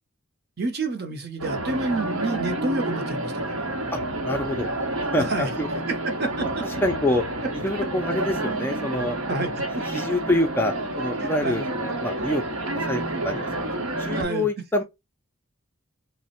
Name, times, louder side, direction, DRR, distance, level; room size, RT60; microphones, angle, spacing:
voice 1, 0.6-3.5 5.3-5.5 5.9-6.8 9.3-9.7 11.2-11.6 14.1-14.5, right 2 dB, 50° right, 0.7 m, -29 dB
sound 1, 1.4-14.2, right 1 dB, 80° right, 0.9 m, -29 dB
voice 2, 3.9-4.7 5.1-5.7 6.8-7.2 7.6-9.2 9.9-12.4 12.7-14.8, left 1 dB, 10° left, 0.4 m, -26 dB
3.2 x 2.1 x 4.2 m
head